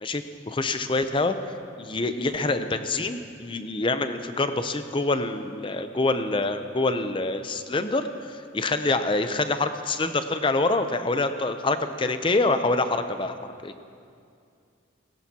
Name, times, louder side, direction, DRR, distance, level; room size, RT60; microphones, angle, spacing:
voice 1, 0.0-13.3 13.6-13.7, left 2 dB, 25° left, 9 dB, 0.6 m, -26 dB
18.0 x 16.5 x 2.9 m, 2.4 s
head